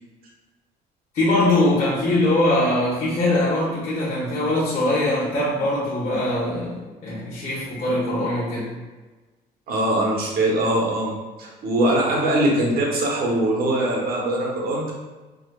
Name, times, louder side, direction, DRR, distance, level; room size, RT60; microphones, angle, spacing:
voice 1, 1.1-8.7, left 1 dB, 45° left, -8 dB, 1.0 m, -22 dB
voice 2, 9.7-14.9, right 1 dB, 65° right, -2 dB, 0.9 m, -22 dB
4.8 x 2.2 x 2.3 m, 1.2 s
cardioid pair, 110°, 17 cm